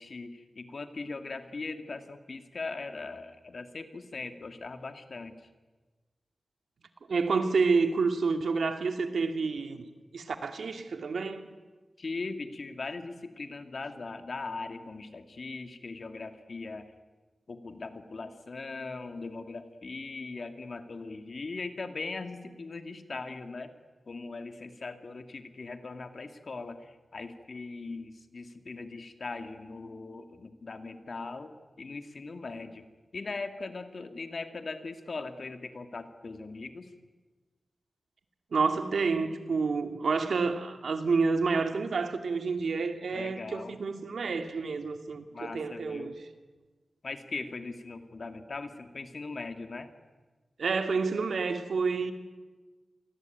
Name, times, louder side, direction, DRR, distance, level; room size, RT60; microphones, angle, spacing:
voice 1, 0.0-5.3 12.0-16.9 17.5-23.7 24.1-32.8 33.1-36.9 43.1-43.7 45.3-46.1 47.0-49.9, left 3 dB, 50° left, 2.3 m, -40 dB
voice 2, 7.1-9.8 10.1-11.5 38.5-46.1 50.6-52.1, right 4 dB, 80° right, 2.4 m, -29 dB
28.0 x 22.5 x 9.3 m
wide cardioid pair, 140°, 0 cm